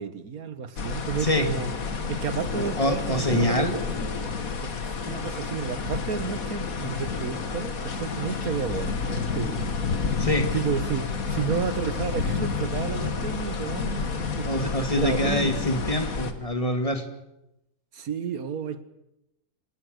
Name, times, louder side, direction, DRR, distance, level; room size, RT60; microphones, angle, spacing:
voice 1, 0.0-1.7 2.1-3.9 4.6-4.7 5.1-9.7 10.4-14.5 15.0-15.6 17.9-18.8, right 6 dB, 80° right, 1.8 m, -31 dB
sound 1, 0.8-16.3, left 5 dB, 70° left, 2.2 m, -30 dB
voice 2, 2.8-3.8 10.2-10.4 14.4-17.0, left 1 dB, 25° left, 2.4 m, -25 dB
26.5 x 18.5 x 6.6 m
omnidirectional pair, 1.5 m